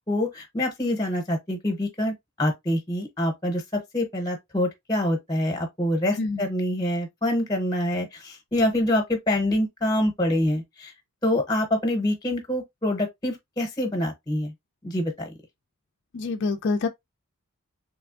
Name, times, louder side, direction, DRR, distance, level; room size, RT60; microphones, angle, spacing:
voice 1, 0.1-10.9 11.2-14.5 14.8-15.3, left 1 dB, 15° left, 0.8 m, -26 dB
voice 2, 16.1-16.9, left 3 dB, 50° left, 0.4 m, -26 dB
3.3 x 3.1 x 2.4 m
head